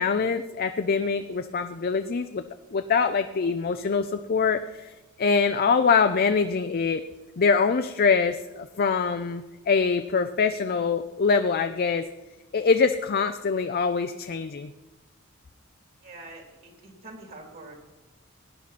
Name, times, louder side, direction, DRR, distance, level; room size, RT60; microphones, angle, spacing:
voice 1, 0.0-2.4 2.7-4.9 5.2-7.0 7.4-12.1 12.5-14.7, left 5 dB, 45° left, 8 dB, 0.5 m, -24 dB
voice 2, 16.0-17.7, right 2 dB, 45° right, 1 dB, 3.1 m, -45 dB
18.0 x 10.0 x 4.2 m, 1.1 s
head